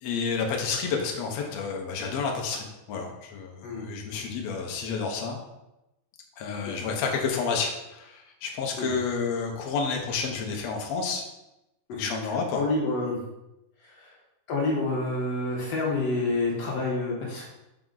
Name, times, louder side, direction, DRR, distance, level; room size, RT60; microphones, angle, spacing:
voice 1, 0.0-5.4 6.4-11.2 11.9-12.6, left 5 dB, 80° left, 1 dB, 1.5 m, -30 dB
voice 2, 11.9-13.2 13.8-14.1 14.5-17.5, left 2 dB, 65° left, -3 dB, 1.7 m, -29 dB
6.0 x 5.9 x 3.9 m, 0.91 s
omnidirectional pair, 4.7 m